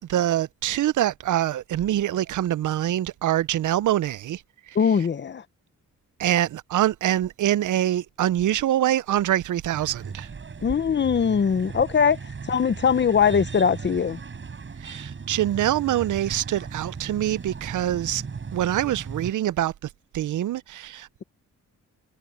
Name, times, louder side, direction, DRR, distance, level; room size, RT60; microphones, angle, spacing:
voice 1, 0.0-4.4 4.7-4.8 6.2-10.3 14.8-18.2 18.5-21.2, right 12 dB, 85° right, 0.6 m, -25 dB
voice 2, 4.8-5.4 10.6-12.2 12.5-14.2, left 6 dB, 35° left, 0.7 m, -21 dB
sound 1, 9.7-19.3, right 5 dB, 40° right, 5.9 m, -37 dB
wide cardioid pair, 140°, 30 cm